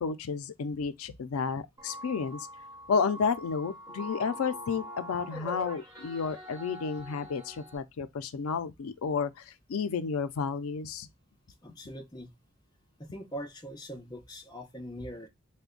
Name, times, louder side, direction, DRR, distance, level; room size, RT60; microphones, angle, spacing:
voice 1, 0.0-2.5 2.9-11.1, left 5 dB, 90° left, 0.4 m, -31 dB
sound 1, 1.8-7.8, equal, 15° right, 1.0 m, -44 dB
voice 2, 11.6-12.3 13.0-15.3, equal, 20° left, 0.6 m, -42 dB
3.3 x 2.1 x 3.6 m
head